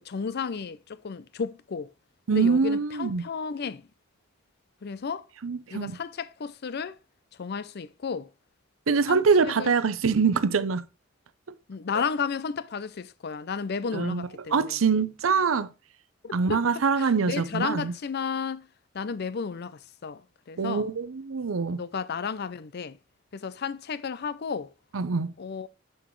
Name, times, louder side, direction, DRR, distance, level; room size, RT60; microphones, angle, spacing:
voice 1, 0.1-1.9 2.3-3.9 4.8-5.3 5.7-7.0 7.4-8.3 9.1-9.7 11.7-14.8 16.2-16.6 17.0-18.7 18.9-20.2 20.5-20.9 21.7-23.0 23.3-24.7 25.4-25.7, left 5 dB, 50° left, 0.5 m, -33 dB
voice 2, 2.3-3.2 5.4-5.9 8.9-10.8 13.9-15.7 16.3-17.9 20.6-21.8 24.9-25.3, right 5 dB, 80° right, 0.6 m, -24 dB
7.6 x 6.0 x 3.1 m
head